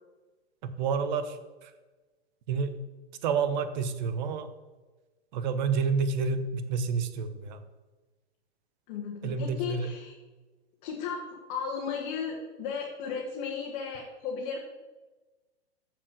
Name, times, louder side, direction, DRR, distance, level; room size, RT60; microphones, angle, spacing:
voice 1, 0.6-1.7 2.5-2.8 3.2-4.5 5.3-7.6 9.2-9.9, right 5 dB, 45° right, 11 dB, 1.1 m, -29 dB
voice 2, 8.9-10.2 10.8-11.2 11.5-14.6, left 6 dB, 40° left, -3 dB, 1.9 m, -35 dB
12.5 x 4.9 x 6.7 m, 1.2 s
figure-of-eight pair, 110°, 33 cm